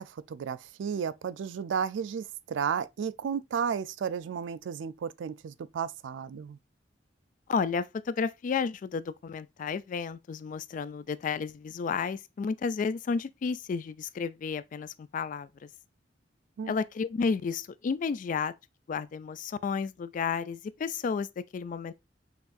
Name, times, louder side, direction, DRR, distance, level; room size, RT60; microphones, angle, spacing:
voice 1, 0.0-6.6 16.6-16.7, right 7 dB, 90° right, 0.4 m, -33 dB
voice 2, 7.5-15.7 16.7-18.5 18.9-21.9, left 5 dB, 45° left, 0.3 m, -32 dB
5.8 x 2.6 x 2.4 m
head